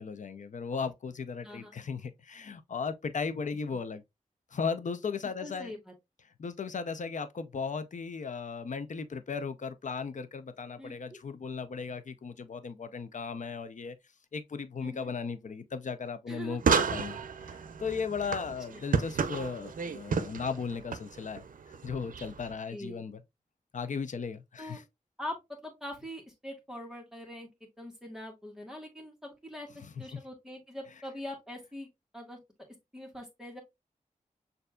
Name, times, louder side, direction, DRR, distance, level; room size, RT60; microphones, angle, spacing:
voice 1, 0.0-4.0 4.5-5.7 6.4-14.0 14.3-21.4 21.8-23.2 23.7-24.8 29.8-29.9, left 5 dB, 65° left, 0.6 m, -36 dB
voice 2, 5.4-5.9 10.8-11.0 14.8-15.1 16.3-16.8 18.7-18.8 22.7-23.0 24.6-24.8 25.2-25.4 25.6-29.7 30.0-31.9 32.1-32.4 32.9-33.6, left 1 dB, 5° right, 1.6 m, -43 dB
sound 1, 16.6-22.5, right 5 dB, 85° right, 0.5 m, -32 dB
6.7 x 2.6 x 2.3 m
wide cardioid pair, 100°, 14 cm